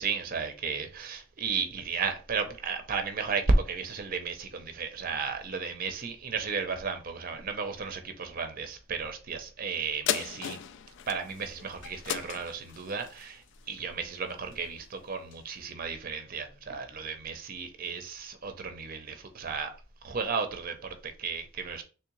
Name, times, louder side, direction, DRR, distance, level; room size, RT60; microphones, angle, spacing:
voice 1, 0.0-10.6 11.1-19.7 20.0-21.8, right 4 dB, 45° right, 0.6 m, -33 dB
sound 1, 10.1-14.8 15.3-15.4, left 9 dB, 65° left, 0.3 m, -36 dB
3.6 x 3.1 x 3.0 m
head